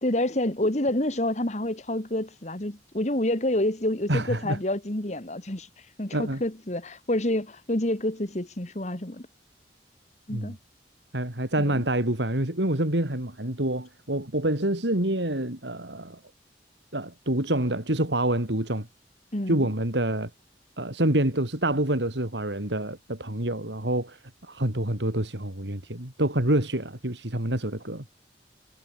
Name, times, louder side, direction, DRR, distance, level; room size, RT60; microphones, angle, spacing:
voice 1, 0.0-5.7 6.0-9.3 10.3-10.6 11.6-11.8 19.3-19.7, left 1 dB, 40° left, 2.3 m, -28 dB
voice 2, 4.1-4.6 6.1-6.4 10.3-10.5 11.1-16.2 16.9-18.9 19.5-20.3 20.8-24.2 24.5-28.0, right 1 dB, 90° right, 4.2 m, -27 dB
head